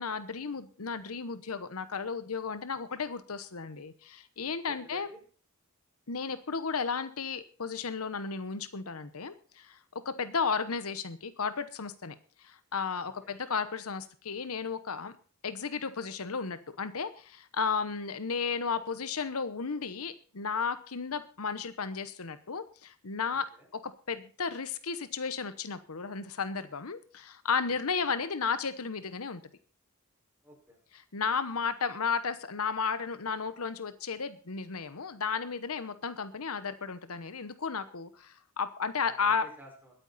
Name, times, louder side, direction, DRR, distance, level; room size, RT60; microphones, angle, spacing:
voice 1, 0.0-5.1 6.1-9.8 10.0-12.1 12.4-15.1 15.4-29.4 30.9-39.4, left 5 dB, 85° left, 12 dB, 1.0 m, -34 dB
voice 2, 4.7-5.2 13.2-13.4 23.5-23.7 30.4-30.8 39.0-39.9, equal, 10° right, 0 dB, 5.2 m, -52 dB
21.5 x 9.1 x 4.2 m, 0.40 s
head